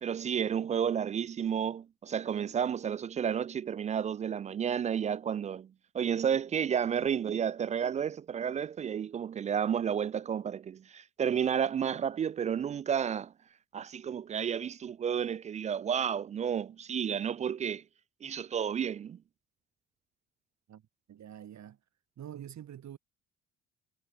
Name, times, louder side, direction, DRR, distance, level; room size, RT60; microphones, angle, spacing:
voice 1, 0.0-13.3 13.7-17.8 18.2-19.2, right 8 dB, 20° right, 0.3 m, -31 dB
voice 2, 21.1-21.8 22.2-23.0, right 10 dB, 40° right, 1.6 m, -46 dB
figure-of-eight pair, 50°, 44 cm